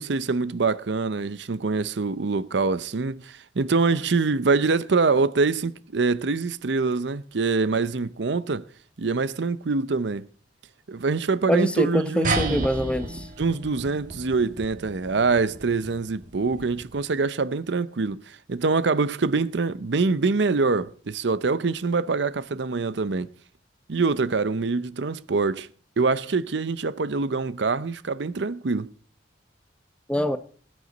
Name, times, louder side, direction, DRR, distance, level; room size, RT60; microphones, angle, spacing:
voice 1, 0.0-8.6 9.0-10.3 10.9-12.7 13.4-23.3 23.9-25.7 26.0-28.9, right 4 dB, 65° right, 0.6 m, -25 dB
voice 2, 11.5-13.3 30.1-30.4, equal, 5° left, 0.8 m, -24 dB
sound 1, 12.2-17.1, right 3 dB, 45° right, 2.1 m, -33 dB
19.5 x 9.5 x 4.0 m
head